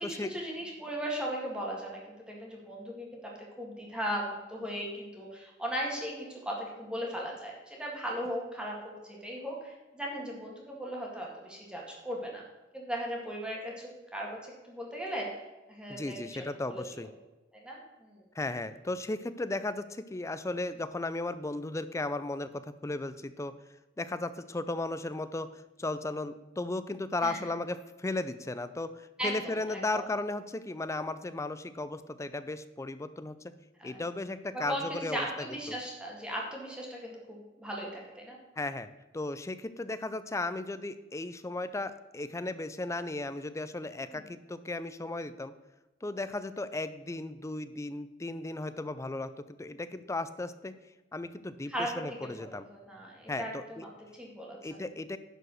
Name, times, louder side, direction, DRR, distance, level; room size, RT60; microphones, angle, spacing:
voice 1, 0.0-2.0 2.3-3.2 3.6-12.4 12.7-15.3 15.7-17.1 17.5-18.2 27.2-27.4 29.2-30.1 33.8-34.0 34.5-38.4 44.1-44.2 51.7-54.6, equal, 5° right, -2 dB, 2.0 m, -37 dB
voice 2, 15.9-17.1 18.4-23.6 24.0-33.5 33.8-35.3 35.7-35.8 38.6-45.5 46.0-50.8 51.1-52.7 53.3-53.9 54.6-55.2, left 2 dB, 15° left, 12 dB, 0.4 m, -35 dB
11.0 x 4.9 x 6.4 m, 1.1 s
head